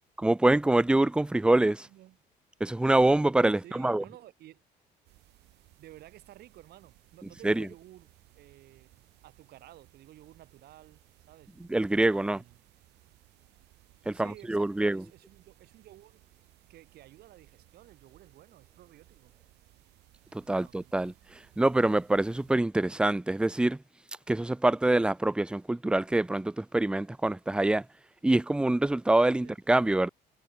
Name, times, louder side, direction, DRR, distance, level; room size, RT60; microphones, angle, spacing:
voice 1, 0.2-1.9 2.6-4.0 7.4-7.7 11.7-12.4 14.1-15.0 20.3-23.8 24.3-27.9 28.2-30.1, right 2 dB, 5° right, 0.5 m, -25 dB
voice 2, 3.6-4.6 5.8-8.1 8.3-11.5 12.0-12.6 14.1-16.2 16.7-19.3 20.5-21.0 29.4-29.6, right 14 dB, 70° right, 2.5 m, -53 dB
sound 1, 5.0-22.6, right 19 dB, 85° right, 3.2 m, -61 dB
cardioid pair, 110°, 17 cm